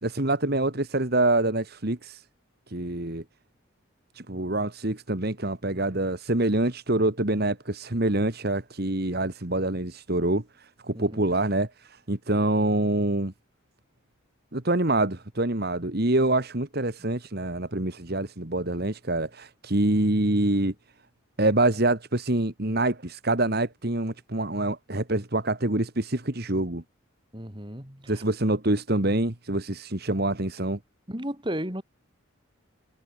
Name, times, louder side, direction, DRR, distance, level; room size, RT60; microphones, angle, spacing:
voice 1, 0.0-2.2 2.7-3.2 4.2-13.3 14.5-20.7 21.4-26.8 28.1-30.8, right 2 dB, 45° right, 1.9 m, -26 dB
voice 2, 27.3-28.2 31.1-31.8, equal, 20° right, 4.0 m, -34 dB
head